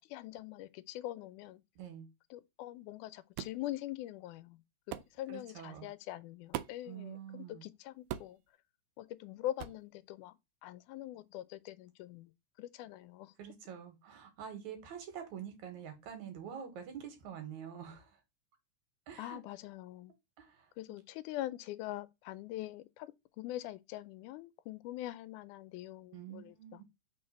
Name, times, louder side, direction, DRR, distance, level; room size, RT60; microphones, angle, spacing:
voice 1, 0.0-1.6 2.3-8.4 9.0-10.3 10.6-12.3 12.6-13.3 19.2-20.1 20.8-26.8, left 14 dB, 90° left, 2.1 m, -43 dB
voice 2, 1.8-2.1 5.3-5.9 6.9-7.6 13.4-18.2 19.1-19.4 20.4-20.7 26.1-26.8, right 8 dB, 75° right, 2.7 m, -46 dB
sound 1, 3.4-3.6 4.9-5.1 6.5-6.9 8.1-8.4 9.6-9.8, right 13 dB, 90° right, 2.0 m, -40 dB
4.6 x 3.9 x 5.5 m
omnidirectional pair, 3.5 m